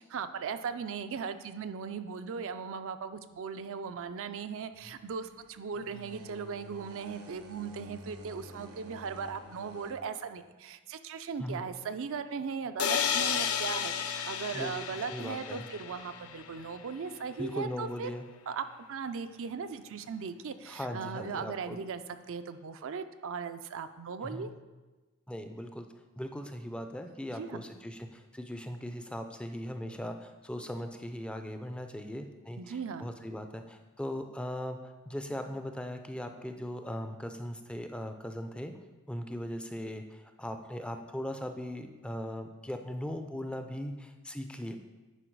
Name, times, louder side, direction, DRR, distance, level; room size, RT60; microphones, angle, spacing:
voice 1, 0.0-18.1 18.5-22.0 22.3-24.5 27.3-27.7 32.6-33.1, right 6 dB, 60° right, 9 dB, 0.5 m, -38 dB
sound 1, 4.7-9.9, right 1 dB, 85° right, 1.1 m, -50 dB
sound 2, 12.8-16.6, left 8 dB, 70° left, 0.6 m, -33 dB
voice 2, 14.5-15.7 17.4-18.3 20.7-21.8 24.2-24.5 25.3-25.9 26.2-38.7 39.1-44.8, equal, 5° left, 6 dB, 0.4 m, -39 dB
10.0 x 4.9 x 4.6 m, 1.2 s
head